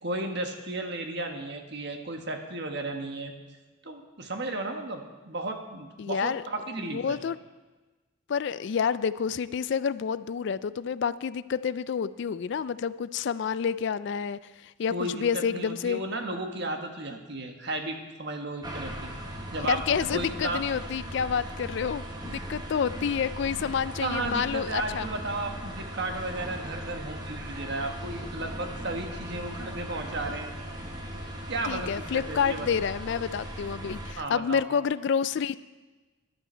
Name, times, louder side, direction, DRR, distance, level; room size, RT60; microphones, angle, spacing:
voice 1, 0.0-3.3 3.8-7.2 14.9-19.1 19.5-20.6 24.0-30.5 31.5-32.7 34.2-34.6, right 2 dB, 55° right, 4 dB, 1.4 m, -34 dB
voice 2, 6.0-6.4 6.9-7.4 8.3-16.0 19.7-25.1 31.7-35.6, left 7 dB, 55° left, 16 dB, 0.3 m, -29 dB
sound 1, 18.6-34.1, equal, 20° right, 1.2 m, -38 dB
14.0 x 11.5 x 4.5 m, 1.2 s
head